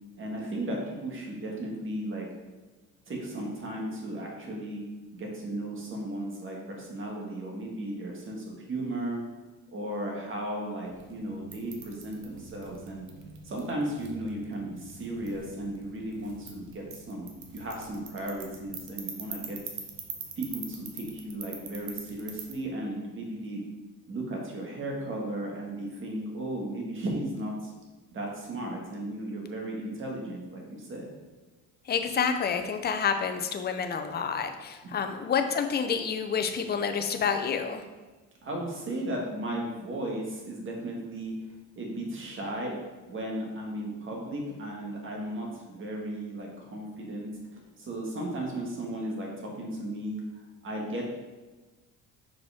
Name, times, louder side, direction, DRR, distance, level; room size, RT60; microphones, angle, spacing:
voice 1, 0.2-2.3 3.1-4.8 5.1-9.2 9.7-13.1 13.4-19.6 20.4-23.6 24.1-27.7 28.1-31.1 38.4-41.3 41.8-42.8 43.1-50.2 50.6-51.1, right 1 dB, 35° right, -1 dB, 1.9 m, -35 dB
sound 1, 10.8-22.5, right 6 dB, 60° right, 1.1 m, -44 dB
voice 2, 31.9-37.8, left 6 dB, 30° left, 7 dB, 0.6 m, -28 dB
6.2 x 4.9 x 3.6 m, 1.3 s
cardioid pair, 105°, 34 cm